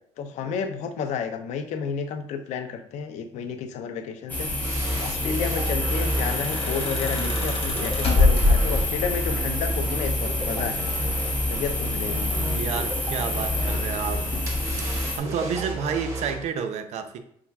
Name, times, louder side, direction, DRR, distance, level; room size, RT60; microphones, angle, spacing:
voice 1, 0.2-4.5 5.0-10.9 11.5-12.4, left 6 dB, 75° left, 7 dB, 0.5 m, -31 dB
sound 1, 4.3-15.2, left 1 dB, 15° left, 0.8 m, -27 dB
sound 2, 4.6-16.4, right 2 dB, 25° right, 0.9 m, -35 dB
sound 3, 5.7-9.2 10.4-11.1 11.5-11.8, left 2 dB, 50° left, 1.0 m, -24 dB
voice 2, 12.5-14.2 15.2-17.2, right 6 dB, 65° right, 7 dB, 0.5 m, -30 dB
5.5 x 2.3 x 2.3 m, 0.71 s
cardioid pair, 130°, 12 cm